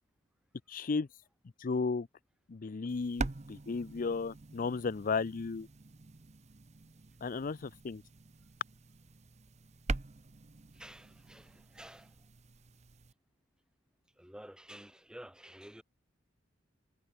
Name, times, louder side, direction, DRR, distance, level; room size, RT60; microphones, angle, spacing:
voice 1, 0.7-1.1 1.6-2.1 2.5-5.7 7.2-8.0, left 4 dB, 45° left, 0.5 m, -34 dB
sound 1, 2.9-13.1, right 3 dB, 35° right, 0.7 m, -44 dB
voice 2, 10.7-12.2 14.2-15.8, right 1 dB, 5° right, 1.3 m, -51 dB
head